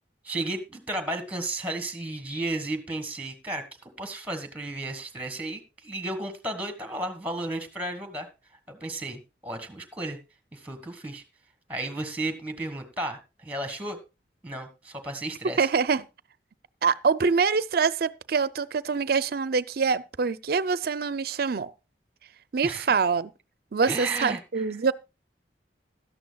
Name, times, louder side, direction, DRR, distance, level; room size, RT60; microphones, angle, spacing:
voice 1, 0.2-8.3 8.7-10.2 10.5-11.2 11.7-14.0 14.4-15.7 22.6-22.9 23.8-24.6, right 2 dB, 10° right, 1.5 m, -33 dB
voice 2, 15.6-16.1 16.8-21.7 22.5-23.3 23.7-24.9, right 5 dB, 60° right, 0.5 m, -25 dB
16.5 x 12.5 x 2.3 m
head